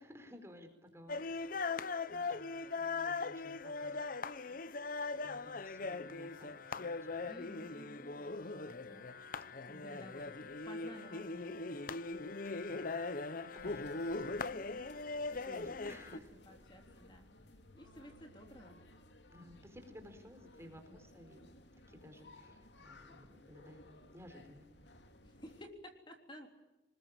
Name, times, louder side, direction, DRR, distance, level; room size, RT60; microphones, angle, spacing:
voice 1, 0.0-1.7 2.1-4.0 5.2-7.3 12.7-12.9 13.4-14.2 15.3-16.3 19.3-21.5 21.9-23.8 24.1-24.7, equal, 15° right, 6 dB, 4.2 m, -56 dB
sound 1, 1.1-16.2, left 3 dB, 50° left, 0.9 m, -40 dB
voice 2, 7.2-11.9 14.5-14.9 15.8-17.3 17.7-18.8 20.9-21.0 25.2-26.5, left 1 dB, 25° left, 3 dB, 3.5 m, -55 dB
sound 2, 13.6-25.7, left 1 dB, 70° left, 2.7 m, -59 dB
27.5 x 20.5 x 8.8 m, 1.0 s
head